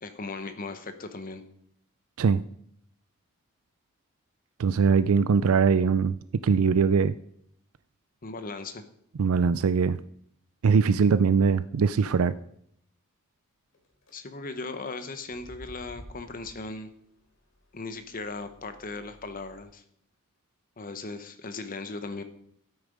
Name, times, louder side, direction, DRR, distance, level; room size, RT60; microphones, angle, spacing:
voice 1, 0.0-1.4 8.2-8.8 14.1-16.9 17.7-19.8 20.8-22.2, left 3 dB, 40° left, 9 dB, 1.1 m, -37 dB
voice 2, 4.6-6.1 6.4-7.1 9.2-10.0 10.6-12.3, right 5 dB, 80° right, 14 dB, 0.4 m, -21 dB
sound 1, 13.7-14.1 15.2-19.6, equal, 70° left, 3.1 m, -52 dB
12.5 x 8.5 x 5.2 m, 0.70 s
head